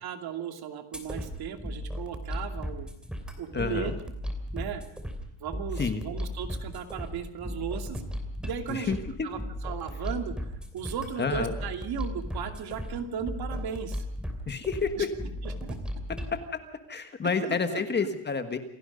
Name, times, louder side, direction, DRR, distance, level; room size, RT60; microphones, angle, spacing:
voice 1, 0.0-2.9 3.4-3.9 4.5-4.8 5.4-8.0 8.4-14.0 15.0-15.1 15.4-15.8 17.4-18.1, right 8 dB, 50° right, 6 dB, 2.7 m, -36 dB
sound 1, 0.9-16.3, equal, ahead, 3.0 m, -36 dB
voice 2, 3.5-3.9 5.8-6.0 8.7-9.3 11.2-11.5 14.5-15.1 16.3-16.4 16.9-18.6, left 5 dB, 20° left, 8 dB, 1.5 m, -29 dB
28.0 x 18.0 x 5.2 m, 0.75 s
cardioid pair, 170°, 48 cm